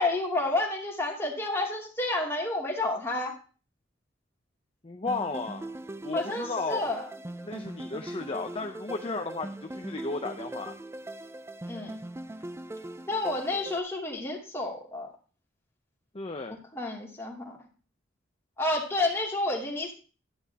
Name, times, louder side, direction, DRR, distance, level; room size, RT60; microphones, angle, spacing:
voice 1, 0.0-3.3 6.1-7.1 11.7-11.9 13.1-15.1 16.5-17.6 18.6-19.9, left 2 dB, 15° left, -2 dB, 2.8 m, -30 dB
voice 2, 4.8-6.9 7.4-10.7 16.1-16.6, left 3 dB, 30° left, 5 dB, 0.7 m, -34 dB
sound 1, 5.1-13.8, right 1 dB, 15° right, 0.4 m, -41 dB
12.5 x 10.5 x 2.9 m, 0.35 s
head